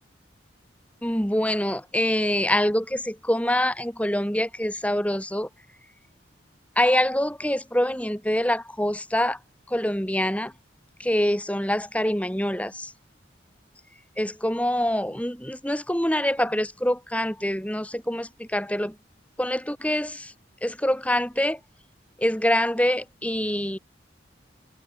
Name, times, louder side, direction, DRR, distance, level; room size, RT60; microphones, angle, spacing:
voice 1, 1.0-5.5 6.8-9.4 9.7-10.5 11.0-12.9 14.2-18.9 19.4-20.3 20.6-21.6 22.2-23.8, left 1 dB, 5° left, 3.0 m, -25 dB
head